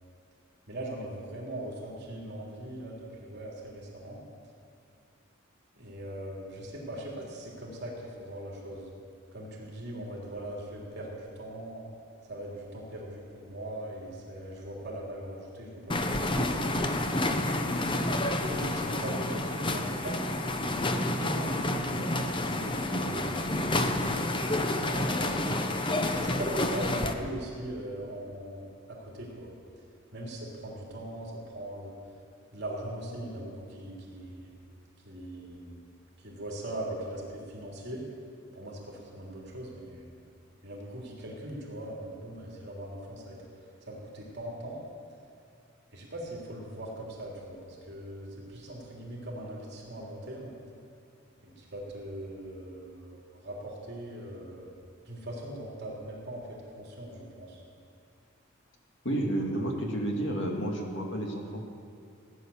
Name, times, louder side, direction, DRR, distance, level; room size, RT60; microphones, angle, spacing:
voice 1, 0.7-4.2 5.7-8.9 9.3-11.9 12.3-16.5 18.4-20.2 20.7-23.3 23.7-25.5 26.1-29.5 30.1-31.9 32.5-34.5 35.0-35.8 36.2-38.0 38.5-40.1 40.6-43.4 43.9-44.8 45.9-50.5 51.4-54.7 55.0-57.6, right 1 dB, 55° right, -3 dB, 3.1 m, -40 dB
sound 1, 15.9-27.1, left 1 dB, 25° left, 0.7 m, -29 dB
voice 2, 59.0-61.6, right 1 dB, 60° left, 1 dB, 2.0 m, -31 dB
16.5 x 9.7 x 7.1 m, 2.4 s
head